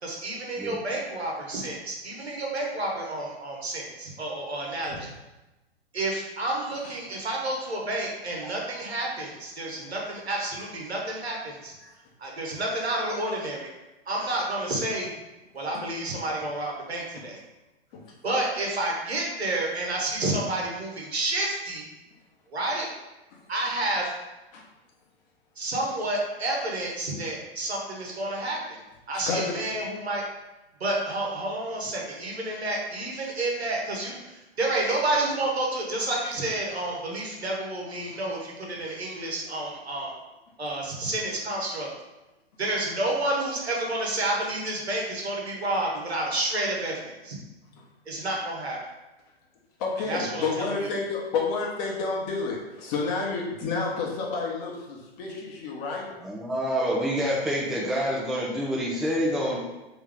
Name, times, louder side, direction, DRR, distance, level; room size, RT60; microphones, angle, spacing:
voice 1, 0.0-5.1 5.9-11.7 12.2-13.7 14.1-15.1 15.5-17.4 18.2-21.8 22.5-22.9 23.5-24.2 25.6-28.8 29.1-30.2 30.8-40.1 40.6-41.9 42.6-47.4 48.1-48.8 50.1-50.9, right 2 dB, 90° right, -2 dB, 1.1 m, -30 dB
voice 2, 29.3-29.6 47.7-47.8 49.8-56.1, left 4 dB, 40° left, -1 dB, 1.0 m, -30 dB
voice 3, 56.2-59.6, equal, ahead, -4 dB, 0.4 m, -27 dB
3.5 x 3.0 x 3.4 m, 1.0 s
hypercardioid pair, 110°, 31 cm